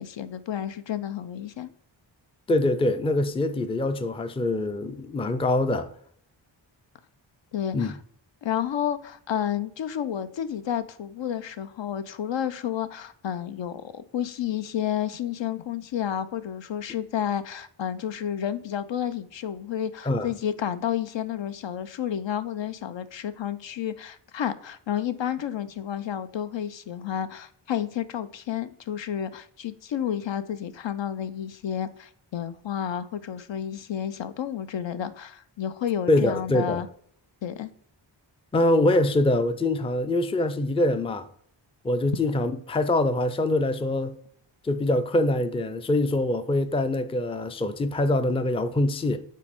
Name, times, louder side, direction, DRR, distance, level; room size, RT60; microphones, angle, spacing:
voice 1, 0.0-1.7 7.5-8.0 8.4-36.9 37.4-37.7, left 10 dB, 70° left, 0.6 m, -31 dB
voice 2, 2.5-5.9 7.7-7.9 20.0-20.3 36.1-36.8 38.5-41.2 41.8-44.2 44.6-49.2, left 1 dB, 15° left, 0.4 m, -24 dB
7.5 x 4.2 x 3.5 m
wide cardioid pair, 115°, 46 cm